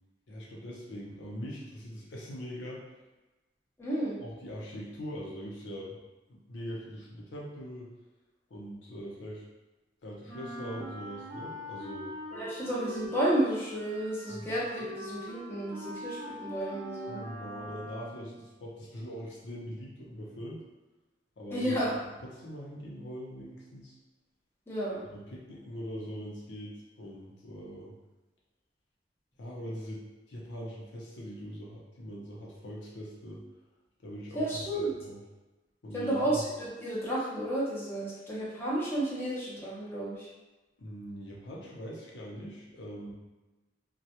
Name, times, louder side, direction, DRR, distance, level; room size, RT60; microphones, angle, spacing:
voice 1, 0.3-3.0 4.2-6.0 6.3-7.9 8.5-9.4 10.0-12.2 14.3-14.5 17.1-20.6 21.4-21.8 22.2-24.0 25.0-27.9 29.4-33.4 34.0-35.2 35.8-36.4 40.8-43.1, equal, 85° left, -4 dB, 0.6 m, -42 dB
voice 2, 3.8-4.1 12.3-17.2 21.5-21.9 24.7-25.0 34.3-34.9 35.9-40.3, right 1 dB, 15° left, -8 dB, 0.7 m, -32 dB
Wind instrument woodwind instrument, 10.3-18.4, equal, 80° right, 0.6 m, -43 dB
2.3 x 2.1 x 2.8 m, 1.1 s
head